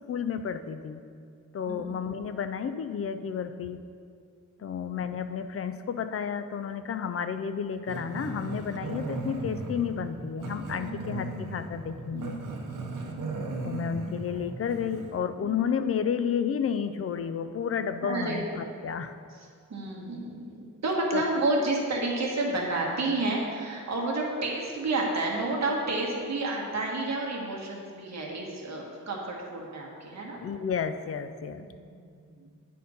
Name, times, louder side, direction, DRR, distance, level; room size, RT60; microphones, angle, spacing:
voice 1, 0.1-1.0 1.5-3.8 4.6-12.4 13.6-19.1 21.1-21.2 30.4-31.6, left 7 dB, 45° left, 10 dB, 0.4 m, -31 dB
Growling, 7.9-15.2, right 2 dB, 75° right, 0.9 m, -37 dB
voice 2, 10.8-11.1 12.1-13.2 15.4-15.6 18.0-18.4 19.7-30.4 31.6-32.6, right 2 dB, 55° right, -2 dB, 1.4 m, -31 dB
9.2 x 4.3 x 5.4 m, 2.2 s
wide cardioid pair, 165°, 32 cm